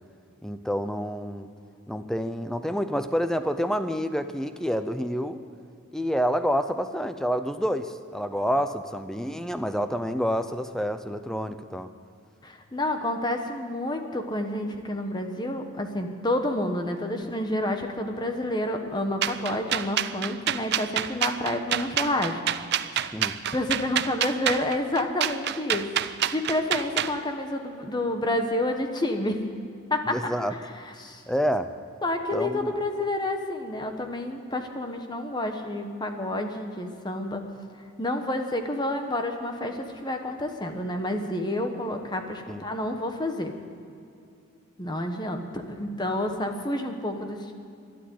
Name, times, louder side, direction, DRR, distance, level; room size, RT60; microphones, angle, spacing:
voice 1, 0.4-1.5 1.9-5.4 5.9-11.9 23.1-23.4 30.1-30.5 31.3-31.7 32.3-32.7 42.5-42.6, equal, ahead, 10 dB, 0.5 m, -28 dB
voice 2, 12.4-22.4 23.5-29.4 29.9-30.2 30.5-31.2 32.0-37.4 38.0-43.5 44.8-47.5, left 1 dB, 20° left, 5 dB, 1.1 m, -29 dB
sound 1, 19.2-27.1, right 10 dB, 50° right, 0.4 m, -27 dB
12.5 x 12.0 x 9.3 m, 2.6 s
head